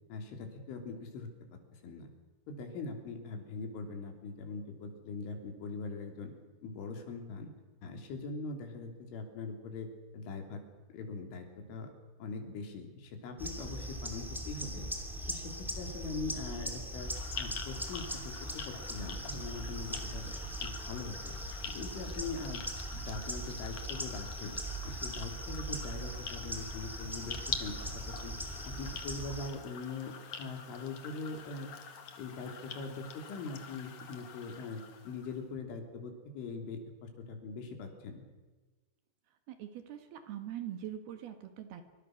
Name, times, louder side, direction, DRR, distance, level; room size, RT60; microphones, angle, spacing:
voice 1, 0.1-1.3 1.7-2.1 2.5-6.3 6.6-7.5 7.8-9.9 10.1-10.6 10.9-11.9 12.2-14.9 15.3-17.1 17.4-18.3 18.7-20.3 20.6-21.4 21.7-22.6 22.9-24.6 24.8-28.3 28.6-30.1 30.4-31.7 32.2-38.2, left 3 dB, 85° left, 4 dB, 5.7 m, -42 dB
sound 1, 13.4-29.5, right 1 dB, ahead, 1.1 m, -40 dB
sound 2, 16.9-35.4, left 7 dB, 50° left, 2.3 m, -46 dB
voice 2, 39.5-41.8, right 11 dB, 65° right, 8 dB, 3.3 m, -42 dB
26.5 x 24.5 x 6.5 m, 1.3 s
omnidirectional pair, 5.4 m